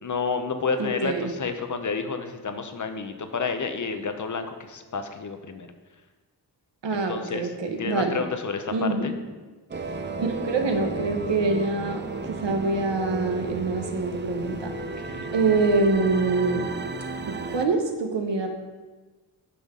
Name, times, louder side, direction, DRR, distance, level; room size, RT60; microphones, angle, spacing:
voice 1, 0.0-5.7 6.9-7.5 7.8-9.1 15.0-15.3, left 5 dB, 45° left, 8 dB, 0.7 m, -30 dB
voice 2, 0.8-1.3 6.8-8.2 8.7-9.2 10.2-14.7 15.3-16.7 17.3-18.5, right 3 dB, 85° right, 3 dB, 1.1 m, -25 dB
sound 1, 9.7-17.7, right 3 dB, 25° right, 0.4 m, -33 dB
9.2 x 5.7 x 3.7 m, 1.3 s
wide cardioid pair, 120°, 42 cm